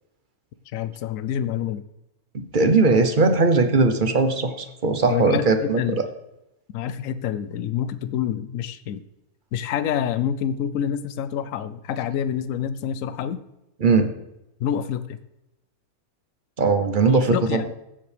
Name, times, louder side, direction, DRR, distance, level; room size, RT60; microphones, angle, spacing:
voice 1, 0.7-1.9 5.1-6.0 6.7-9.0 9.5-13.4 14.6-15.2 17.1-17.7, left 9 dB, 70° left, 13 dB, 1.0 m, -27 dB
voice 2, 2.3-5.8 13.8-14.1 16.6-17.6, right 3 dB, 40° right, 7 dB, 0.9 m, -19 dB
15.0 x 7.6 x 3.4 m, 0.89 s
omnidirectional pair, 1.6 m